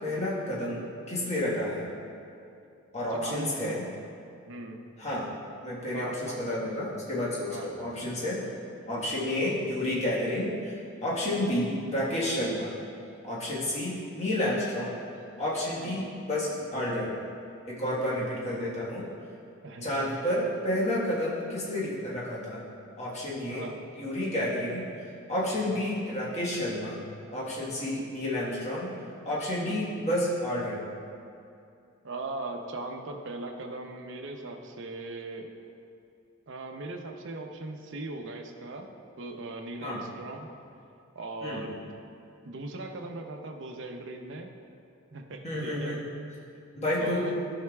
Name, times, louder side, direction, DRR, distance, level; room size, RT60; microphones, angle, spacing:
voice 1, 0.0-1.9 2.9-3.8 5.0-5.3 5.6-8.5 8.9-10.7 11.0-12.7 13.2-14.9 15.4-17.1 17.6-19.0 19.8-22.6 23.0-23.7 24.0-24.8 25.3-27.0 27.3-28.9 29.2-30.9 39.8-40.0 41.4-41.6 45.4-46.1 46.7-47.3, left 1 dB, 35° left, -6 dB, 1.4 m, -30 dB
voice 2, 3.1-3.8 4.5-4.8 5.9-6.4 7.5-7.8 11.3-11.5 13.5-13.7 15.8-16.0 19.6-20.1 23.5-23.8 25.5-25.7 27.8-28.0 29.6-29.8 32.0-35.5 36.5-38.9 39.2-40.5 41.2-41.9 42.4-44.5 45.1-46.0 47.0-47.4, right 2 dB, 60° right, 3 dB, 0.7 m, -39 dB
12.5 x 5.7 x 2.3 m, 2.6 s
head